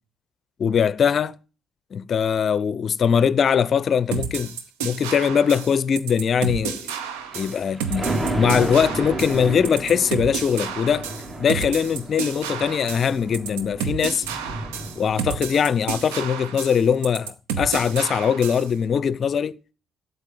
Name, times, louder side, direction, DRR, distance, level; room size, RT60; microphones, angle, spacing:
voice 1, 0.6-1.3 1.9-4.6 4.8-6.9 7.3-8.1 8.4-11.1 11.4-14.2 15.0-19.5, left 7 dB, 50° left, 0.5 m, -21 dB
sound 1, 4.1-18.7, right 7 dB, 75° right, 0.8 m, -31 dB
Thunder, 7.2-15.5 15.9-16.0, right 2 dB, 40° right, 3.1 m, -32 dB
8.2 x 6.9 x 8.5 m
figure-of-eight pair, 45°, 0 cm